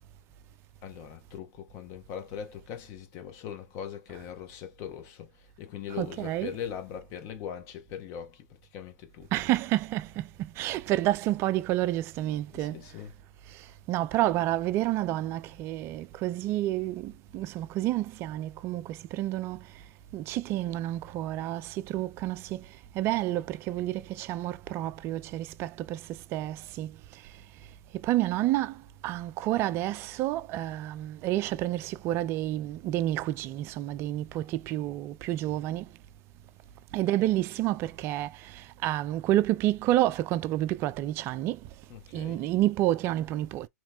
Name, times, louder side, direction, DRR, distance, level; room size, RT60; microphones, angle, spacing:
voice 1, 0.8-8.5 8.7-9.3 12.5-13.1 41.9-42.4, left 9 dB, 35° left, 1.0 m, -40 dB
voice 2, 6.0-6.5 9.3-12.8 13.9-19.6 20.1-22.6 23.0-26.0 26.3-26.9 28.0-28.7 29.0-35.9 36.9-41.6 42.1-43.7, right 14 dB, 30° right, 0.3 m, -29 dB
4.1 x 3.0 x 2.3 m
hypercardioid pair, 115°, 9 cm